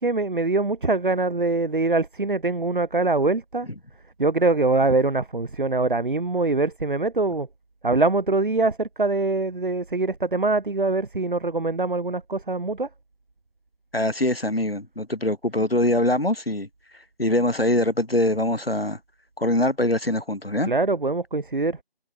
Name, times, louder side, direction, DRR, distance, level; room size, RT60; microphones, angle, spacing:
voice 1, 0.0-3.7 4.2-7.5 7.8-12.9 20.6-21.8, right 3 dB, 60° right, 3.2 m, -23 dB
voice 2, 13.9-16.7 17.2-19.0 19.4-20.7, left 1 dB, 85° left, 7.2 m, -23 dB
figure-of-eight pair, 160°, 29 cm